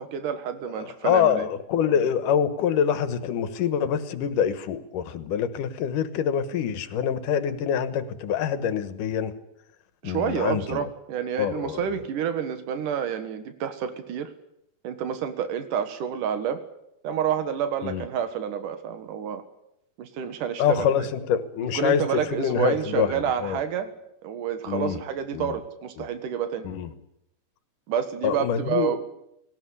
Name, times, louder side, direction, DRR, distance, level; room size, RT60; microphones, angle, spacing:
voice 1, 0.0-1.4 10.0-14.3 14.8-16.6 17.0-19.4 20.0-20.8 21.6-23.9 24.2-26.6 27.9-29.0, right 8 dB, 85° right, 9 dB, 3.1 m, -29 dB
voice 2, 0.7-9.3 10.0-10.9 11.4-11.9 17.8-18.0 20.6-23.6 24.7-25.0 25.3-25.5 26.0-26.1 26.6-26.9 28.2-29.0, left 8 dB, 85° left, 12 dB, 2.9 m, -25 dB
19.0 x 18.0 x 9.9 m, 0.81 s
omnidirectional pair, 3.6 m